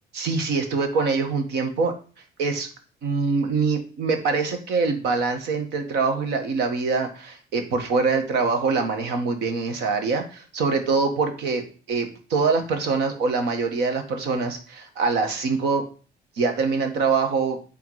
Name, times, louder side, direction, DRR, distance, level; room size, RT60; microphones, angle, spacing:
voice 1, 0.1-1.9 2.4-2.7 3.0-15.8 16.4-17.6, right 4 dB, 80° right, 6 dB, 1.6 m, -24 dB
9.4 x 3.6 x 4.8 m, 0.38 s
cardioid pair, 110°, 17 cm